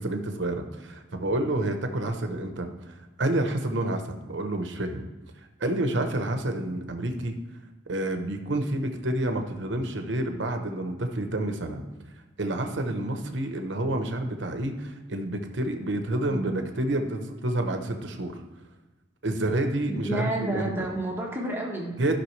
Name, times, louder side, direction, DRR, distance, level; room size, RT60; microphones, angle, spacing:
voice 1, 0.0-2.7 3.2-5.0 5.6-7.3 7.9-11.8 12.4-18.4 19.2-20.9 22.0-22.2, right 1 dB, 65° right, 5 dB, 1.0 m, -29 dB
voice 2, 16.3-16.6 19.9-21.9, right 1 dB, 10° right, -2 dB, 1.4 m, -30 dB
15.0 x 5.8 x 3.3 m, 1.1 s
head